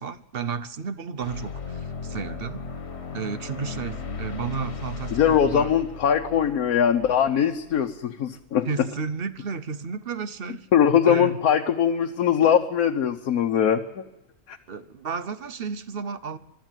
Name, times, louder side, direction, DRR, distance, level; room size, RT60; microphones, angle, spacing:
voice 1, 0.0-2.6 3.1-5.7 8.7-10.7 11.1-11.4 14.7-16.4, right 5 dB, 50° right, 0.9 m, -32 dB
sound 1, 1.2-7.9, left 4 dB, 50° left, 1.6 m, -36 dB
voice 2, 5.1-8.7 10.7-14.0 14.5-14.6, left 8 dB, 85° left, 1.4 m, -21 dB
23.5 x 13.0 x 9.1 m
omnidirectional pair, 1.5 m